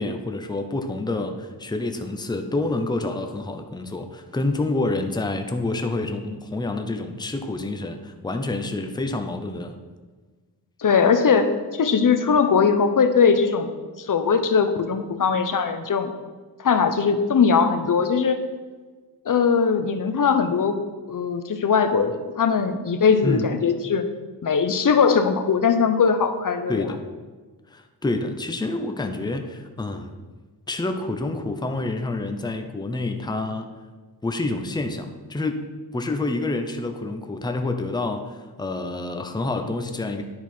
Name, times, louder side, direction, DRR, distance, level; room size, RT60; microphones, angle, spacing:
voice 1, 0.0-9.8 23.2-23.5 26.7-27.0 27.7-30.1 30.7-33.7 34.2-35.6 35.9-40.2, left 2 dB, 10° left, 5 dB, 0.6 m, -28 dB
voice 2, 10.8-13.7 14.0-16.1 16.6-18.4 19.3-20.8 21.1-24.0 24.4-26.8, left 6 dB, 50° left, 9 dB, 0.7 m, -20 dB
10.5 x 4.5 x 4.3 m, 1.3 s
wide cardioid pair, 85°, 41 cm